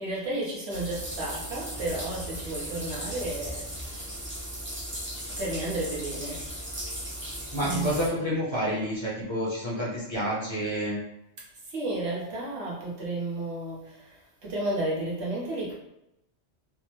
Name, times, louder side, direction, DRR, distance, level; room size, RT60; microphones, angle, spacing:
voice 1, 0.0-3.9 5.3-6.5 7.6-7.9 11.7-15.8, right 2 dB, 85° right, -5 dB, 1.2 m, -32 dB
sound 1, 0.7-8.1, equal, 15° right, 0.5 m, -37 dB
voice 2, 7.5-11.0, equal, 30° left, -6 dB, 0.7 m, -29 dB
3.3 x 2.0 x 3.0 m, 0.84 s
omnidirectional pair, 1.1 m